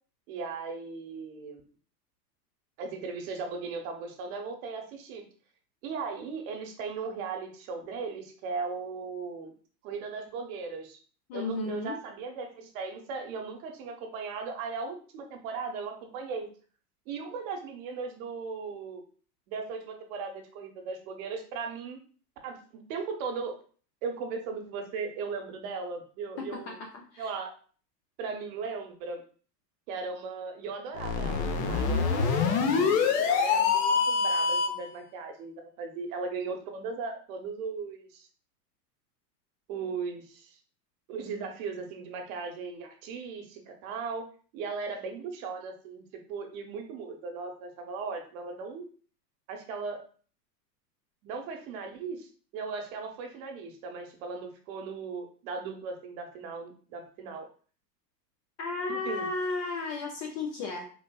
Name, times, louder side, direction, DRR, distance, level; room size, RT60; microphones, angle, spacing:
voice 1, 0.3-1.6 2.8-5.2 5.8-9.5 9.8-11.0 11.3-16.5 17.1-19.0 19.5-22.0 22.4-22.6 22.9-23.6 24.0-26.8 27.2-27.5 28.2-29.2 29.9-32.9 33.3-38.3 39.7-40.6 41.1-44.3 44.5-46.0 46.3-48.8 49.5-50.0 51.2-57.5 58.9-59.3, right 4 dB, 55° right, 4 dB, 1.0 m, -37 dB
voice 2, 11.3-12.0 26.4-27.3 58.6-60.9, left 3 dB, 30° left, 1 dB, 0.4 m, -34 dB
sound 1, 30.9-34.9, left 5 dB, 70° left, 0.8 m, -25 dB
3.9 x 2.5 x 2.3 m, 0.42 s
hypercardioid pair, 115°, 49 cm